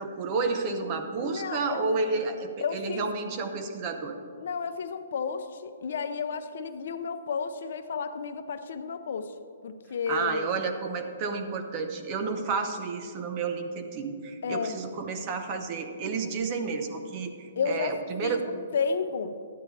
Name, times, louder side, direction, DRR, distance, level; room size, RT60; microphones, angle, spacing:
voice 1, 0.0-4.2 10.1-18.4, right 4 dB, 35° right, 6 dB, 0.9 m, -31 dB
voice 2, 1.2-1.9 2.6-3.1 4.4-9.3 9.6-10.5 14.4-14.8 17.6-17.9 18.2-19.4, left 5 dB, 65° left, 10 dB, 0.6 m, -32 dB
12.5 x 9.4 x 3.3 m, 2.2 s
hypercardioid pair, 145°, 0 cm